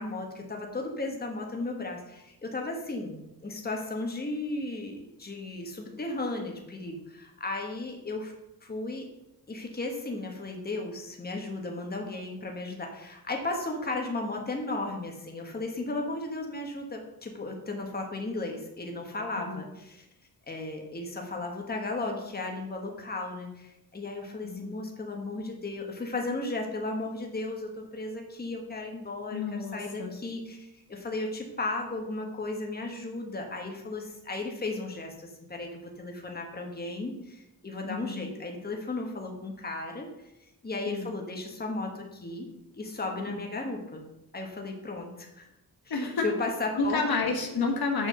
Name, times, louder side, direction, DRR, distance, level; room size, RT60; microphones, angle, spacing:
voice 1, 0.0-8.3 8.6-9.0 9.5-20.1 20.5-40.3 40.6-42.5 42.8-44.0 44.3-45.5 45.8-47.1, left 2 dB, 25° left, 2 dB, 1.5 m, -35 dB
voice 2, 24.4-24.8 29.3-30.2 37.8-38.3 40.9-41.1 43.3-43.4 45.9-46.3 46.7-48.1, left 4 dB, 75° left, 3 dB, 1.5 m, -30 dB
6.5 x 5.9 x 6.9 m, 0.92 s
wide cardioid pair, 135°, 36 cm